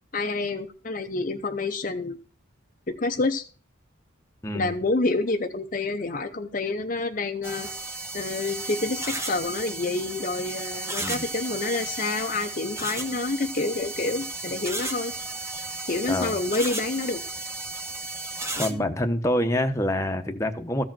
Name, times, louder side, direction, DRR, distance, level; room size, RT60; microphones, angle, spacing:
voice 1, 0.1-2.2 2.9-3.4 4.5-7.7 8.1-15.1 15.9-17.2 18.6-18.8, left 3 dB, 40° left, 0.7 m, -28 dB
voice 2, 4.4-4.7 11.0-11.2 16.1-16.4 18.6-20.8, left 1 dB, 15° left, 0.9 m, -26 dB
sound 1, 7.4-18.7, right 2 dB, 15° right, 1.0 m, -34 dB
14.5 x 5.0 x 7.5 m
head